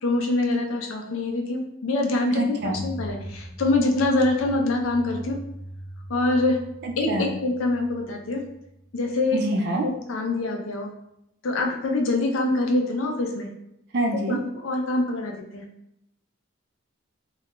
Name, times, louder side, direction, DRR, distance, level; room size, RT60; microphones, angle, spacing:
voice 1, 0.0-5.4 6.1-6.6 7.0-8.5 8.9-9.4 9.8-10.9 11.4-13.5 14.1-15.6, left 2 dB, 75° left, 3 dB, 0.4 m, -25 dB
voice 2, 2.3-2.8 6.8-7.3 9.3-9.8 13.9-14.4, right 1 dB, 55° right, 2 dB, 0.4 m, -26 dB
sound 1, 2.6-9.1, right 1 dB, 5° right, 0.7 m, -40 dB
2.3 x 2.1 x 2.9 m, 0.82 s
head